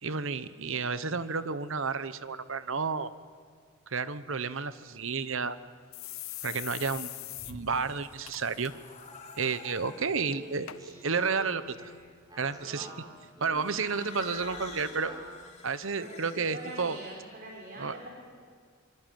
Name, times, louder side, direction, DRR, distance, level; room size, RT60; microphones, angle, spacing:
voice 1, 0.0-3.1 3.9-5.6 6.4-7.2 7.5-8.7 9.4-10.7 11.0-11.9 12.4-12.9 13.4-15.1 15.6-17.0 17.8-18.0, right 5 dB, 60° right, 14 dB, 1.0 m, -31 dB
sound 1, 5.0-5.1 5.4-5.5 5.9-7.5 7.9-8.0 8.3-8.7 9.0-9.4 10.0-10.1 10.7-10.8 11.5-11.6, left 16 dB, 70° left, 0.9 m, -41 dB
sound 2, 7.3-10.6 11.5-11.9 13.5-17.1, left 3 dB, 35° left, 4.2 m, -49 dB
Speech, 10.0-15.4, right 2 dB, 20° right, 4.6 m, -46 dB
voice 2, 16.0-18.1, right 1 dB, 45° right, -1 dB, 4.4 m, -44 dB
25.0 x 23.5 x 9.3 m, 2.1 s
head